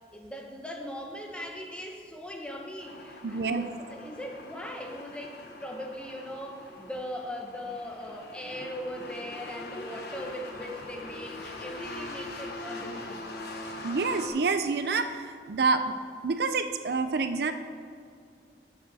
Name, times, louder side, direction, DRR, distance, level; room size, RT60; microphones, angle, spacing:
voice 1, 0.1-13.3, equal, 5° left, 1 dB, 0.9 m, -40 dB
sound 1, 2.8-14.3, left 2 dB, 60° left, 1.0 m, -42 dB
voice 2, 3.2-3.6 13.8-15.9 16.2-17.5, right 4 dB, 65° right, 9 dB, 0.5 m, -27 dB
13.0 x 6.9 x 4.1 m, 2.3 s
head